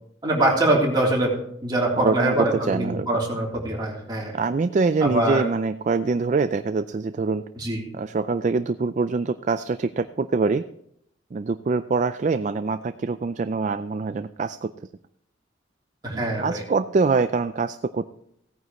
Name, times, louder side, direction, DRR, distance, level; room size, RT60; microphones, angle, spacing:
voice 1, 0.2-1.3 1.6-4.3 5.0-5.5 7.6-7.8 16.0-16.6, right 1 dB, 20° right, -4 dB, 3.3 m, -23 dB
voice 2, 2.0-3.1 4.3-7.4 7.9-10.6 11.3-14.7 16.1-18.1, right 4 dB, 40° right, 11 dB, 0.3 m, -24 dB
16.5 x 9.4 x 3.1 m, 0.73 s
head